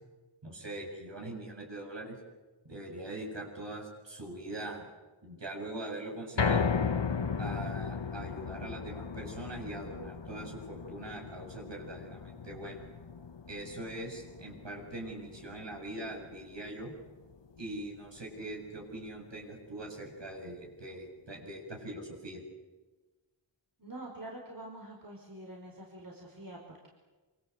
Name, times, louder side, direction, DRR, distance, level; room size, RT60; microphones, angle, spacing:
voice 1, 0.4-2.2 2.6-4.9 5.2-6.7 7.4-12.9 13.5-16.9 17.6-22.4, right 1 dB, 60° right, 1 dB, 7.9 m, -42 dB
sound 1, 6.4-18.6 19.0-19.1 19.6-19.7, left 5 dB, 65° left, 1.2 m, -36 dB
voice 2, 23.8-26.9, right 1 dB, 45° right, -1 dB, 5.2 m, -46 dB
27.0 x 26.0 x 8.2 m, 1.2 s
wide cardioid pair, 65°, 48 cm